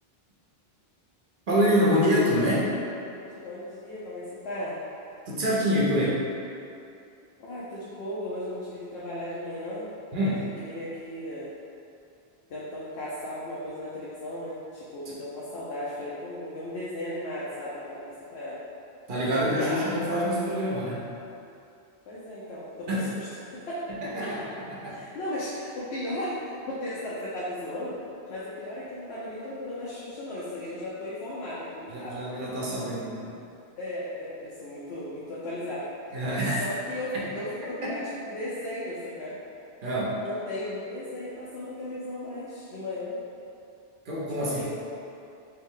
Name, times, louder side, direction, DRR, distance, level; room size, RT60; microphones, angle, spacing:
voice 1, 1.5-2.7 5.3-6.2 10.1-10.4 19.1-21.1 22.9-23.1 24.0-24.4 24.7-25.0 31.9-33.3 36.1-36.6 37.1-37.2 37.8-37.9 39.8-40.2 44.0-44.6, equal, 55° right, -6 dB, 0.9 m, -26 dB
voice 2, 3.0-4.8 7.4-9.9 10.2-10.3 10.6-11.5 12.5-18.6 19.3-19.8 22.1-23.3 23.5-23.8 24.2-24.5 24.9-28.0 28.3-32.3 33.2-33.3 33.8-35.9 36.6-39.4 40.2-43.2 44.4-44.7, left 1 dB, 80° left, -8 dB, 0.9 m, -36 dB
3.3 x 3.1 x 3.6 m, 2.6 s
omnidirectional pair, 1.0 m